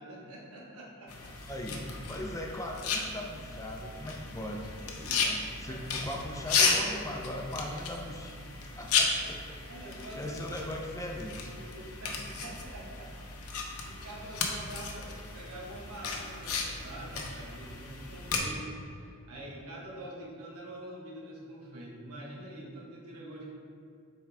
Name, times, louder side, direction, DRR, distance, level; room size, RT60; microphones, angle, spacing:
voice 1, 0.0-1.4 4.8-5.3 5.6-5.8 8.8-8.9 9.7-10.3 11.5-13.2 13.8-23.5, right 1 dB, 85° right, -3 dB, 1.3 m, -45 dB
sound 1, 1.1-18.4, left 4 dB, 90° left, 0.8 m, -34 dB
voice 2, 1.5-4.7 5.2-8.4 8.8-9.6 10.1-11.5, left 1 dB, 15° left, 1 dB, 0.5 m, -39 dB
7.3 x 4.4 x 3.4 m, 2.4 s
head